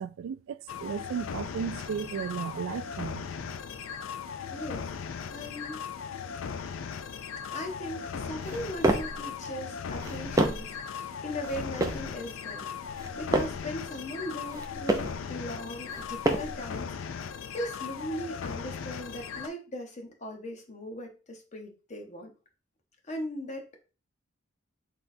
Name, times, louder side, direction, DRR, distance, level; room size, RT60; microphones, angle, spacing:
voice 1, 0.0-3.3, right 7 dB, 80° right, 0.3 m, -35 dB
sound 1, 0.7-19.5, left 6 dB, 75° left, 0.4 m, -38 dB
voice 2, 4.5-4.9 5.3-5.8 7.5-12.7 13.2-22.3 23.1-23.8, equal, 35° left, 0.8 m, -39 dB
sound 2, 8.4-9.2 9.9-10.8 11.4-12.1 12.8-13.7 14.4-15.2 15.9-16.7, right 1 dB, 15° right, 0.5 m, -29 dB
4.0 x 3.9 x 2.6 m
head